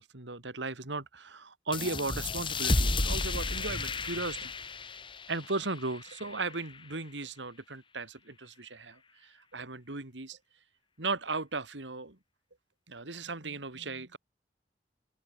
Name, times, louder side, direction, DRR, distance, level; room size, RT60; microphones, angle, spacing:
voice 1, 0.0-4.5 5.3-10.4 11.0-12.2 12.9-14.2, right 3 dB, 90° right, 2.6 m, -36 dB
sound 1, 1.7-6.9, left 3 dB, 30° left, 1.9 m, -33 dB
head